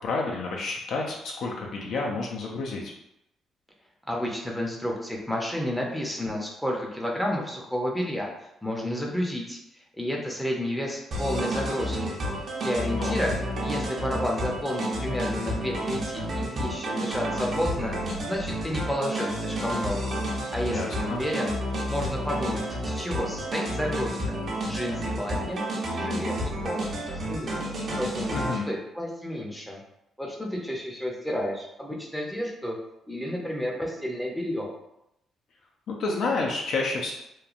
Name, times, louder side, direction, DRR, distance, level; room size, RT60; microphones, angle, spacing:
voice 1, 0.0-2.9 13.0-13.2 20.7-21.2 28.3-28.7 35.9-37.1, left 3 dB, 70° left, -1 dB, 0.4 m, -30 dB
voice 2, 4.1-8.3 8.6-9.6 10.0-12.2 12.6-13.3 13.6-17.9 18.2-20.2 20.5-21.5 21.9-24.4 24.7-27.6 28.0-29.8 30.2-32.7 33.1-34.7, equal, 5° left, -1 dB, 0.5 m, -31 dB
sound 1, 11.1-28.6, equal, 55° right, 0.6 m, -30 dB
2.9 x 2.2 x 2.4 m, 0.84 s
cardioid pair, 90°, 0 cm